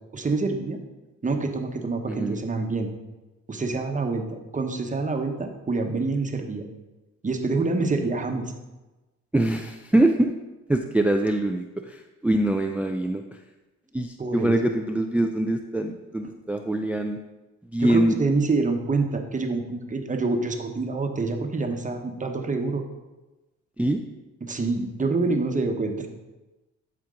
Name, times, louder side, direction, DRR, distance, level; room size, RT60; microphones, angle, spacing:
voice 1, 0.1-0.8 1.2-2.9 3.5-4.2 4.5-6.6 7.2-8.5 14.2-14.6 17.8-22.8 24.4-26.1, right 3 dB, 25° right, 4 dB, 1.1 m, -26 dB
voice 2, 2.1-2.4 9.3-10.3 10.7-13.2 13.9-17.2 17.7-18.2 23.8-24.0, right 1 dB, 5° right, 5 dB, 0.4 m, -24 dB
11.5 x 4.5 x 3.8 m, 1.1 s
cardioid pair, 90°, 30 cm